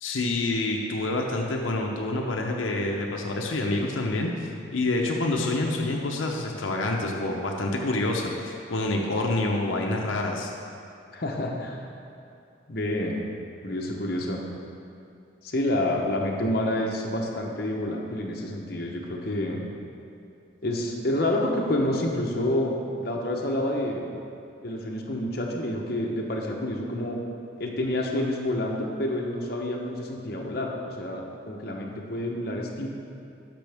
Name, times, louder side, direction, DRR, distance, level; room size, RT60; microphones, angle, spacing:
voice 1, 0.0-4.3 4.7-10.5, left 2 dB, 85° left, 0 dB, 0.8 m, -27 dB
voice 2, 11.1-11.8 12.7-13.2 13.6-14.4 15.4-19.6 20.6-24.1 24.6-27.2 27.6-32.9, left 1 dB, 50° left, -1 dB, 0.9 m, -28 dB
12.0 x 6.1 x 3.5 m, 2.5 s
head